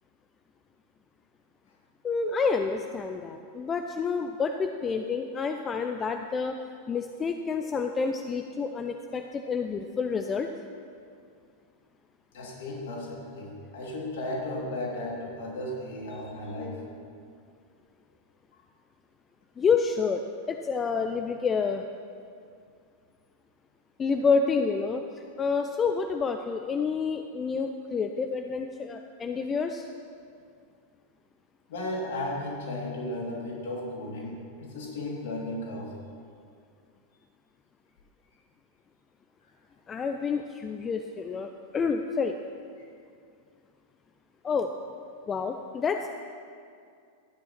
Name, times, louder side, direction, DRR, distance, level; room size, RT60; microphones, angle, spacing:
voice 1, 2.0-6.6 6.9-10.5 19.6-20.2 20.5-21.8 24.0-29.9 39.9-42.4 44.4-44.7 45.3-46.1, left 5 dB, 20° left, 6 dB, 0.6 m, -28 dB
voice 2, 12.3-16.9 31.7-36.0, left 1 dB, 55° left, -3 dB, 3.1 m, -35 dB
13.5 x 9.5 x 5.9 m, 2.3 s
figure-of-eight pair, 90°, 0 cm